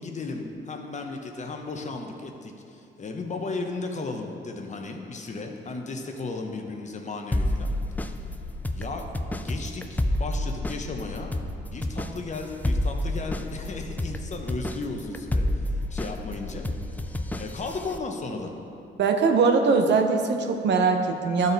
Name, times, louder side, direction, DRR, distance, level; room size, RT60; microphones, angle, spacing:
voice 1, 0.0-7.7 8.7-9.0 9.3-11.3 11.6-15.5 15.9-16.7 17.3-18.5, left 3 dB, 35° left, 3 dB, 0.8 m, -35 dB
sound 1, 7.3-18.0, left 1 dB, 10° left, 0.3 m, -30 dB
voice 2, 19.0-21.5, right 4 dB, 65° right, 5 dB, 0.7 m, -21 dB
12.0 x 4.1 x 4.0 m, 2.6 s
cardioid pair, 90°, 20 cm